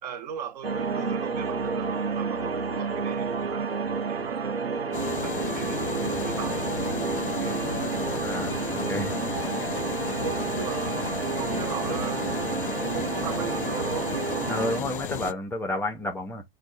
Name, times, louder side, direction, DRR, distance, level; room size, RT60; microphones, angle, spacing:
voice 1, 0.0-3.7 4.1-4.6 5.2-7.6 10.2-11.1 11.4-12.4 12.9-14.1, right 8 dB, 45° right, 0.6 m, -39 dB
sound 1, 0.6-14.8, right 5 dB, 85° right, 0.7 m, -30 dB
sound 2, 4.9-15.3, left 10 dB, 60° left, 0.4 m, -34 dB
voice 2, 8.2-9.1 14.5-16.4, left 1 dB, 10° left, 0.5 m, -31 dB
6.0 x 2.2 x 2.6 m
figure-of-eight pair, 100°, 30 cm